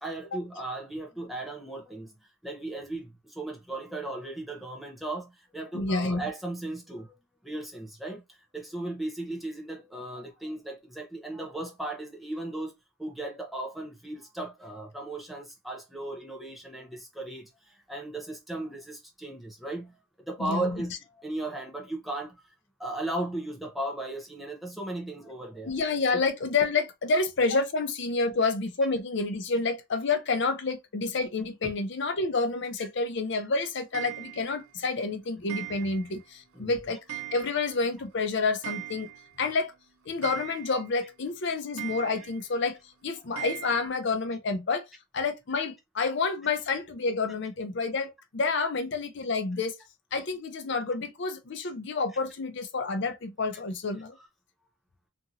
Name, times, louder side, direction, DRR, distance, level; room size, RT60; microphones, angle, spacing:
voice 1, 0.0-7.1 7.4-12.7 13.0-22.4 22.8-25.7 31.6-31.7 32.8-32.9 36.5-36.7, right 2 dB, ahead, 0.7 m, -36 dB
voice 2, 5.7-6.2 20.4-20.9 25.6-39.1 39.4-39.7 40.1-42.8 43.0-44.8 45.1-49.8 50.1-54.2, left 3 dB, 55° left, 0.5 m, -29 dB
Clock, 33.9-34.7 35.5-36.2 36.5-36.6 37.1-37.9 38.1-38.2 38.4-39.4 39.7-39.8 40.2-41.0 41.8-42.5 43.4-43.9, right 13 dB, 85° right, 0.5 m, -40 dB
2.8 x 2.6 x 2.5 m
head